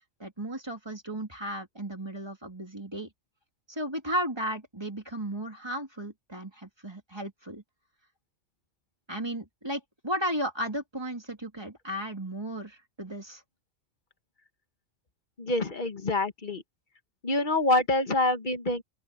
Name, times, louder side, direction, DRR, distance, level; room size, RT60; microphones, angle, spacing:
voice 1, 0.2-3.1 3.7-7.6 9.1-13.4, right 1 dB, 20° right, 3.2 m, -34 dB
voice 2, 15.4-16.6 17.2-18.8, left 2 dB, 35° left, 1.5 m, -26 dB
open air
omnidirectional pair, 1.4 m